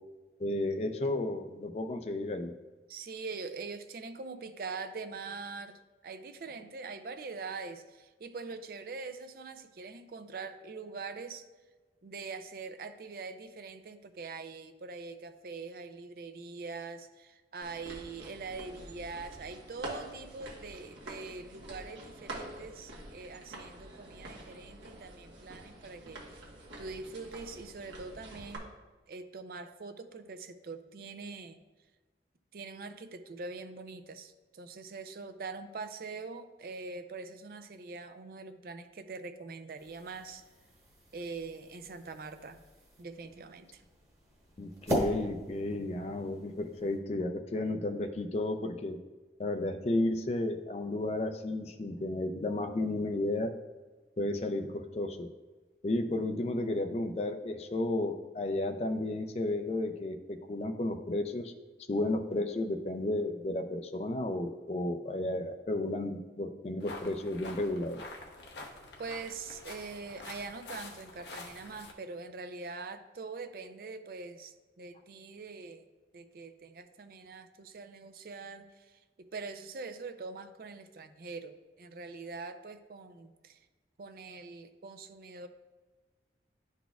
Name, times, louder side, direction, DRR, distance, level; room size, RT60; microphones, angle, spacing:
voice 1, 0.4-2.5 44.6-49.0 49.4-53.5 54.2-55.3 55.8-61.5 61.9-68.0, left 2 dB, 35° left, 7 dB, 0.4 m, -33 dB
voice 2, 2.9-11.5 12.0-26.5 26.8-28.7 29.1-31.6 32.5-40.4 41.1-42.6 43.0-43.8 69.0-75.8 76.1-83.7 84.0-85.5, right 4 dB, 55° right, 9 dB, 0.4 m, -43 dB
sound 1, 17.6-28.6, right 2 dB, 85° right, 1.3 m, -47 dB
sound 2, 39.8-47.0, equal, 15° right, 1.1 m, -40 dB
sound 3, 66.8-71.9, left 3 dB, 75° left, 0.8 m, -47 dB
11.0 x 4.1 x 2.3 m, 1.3 s
head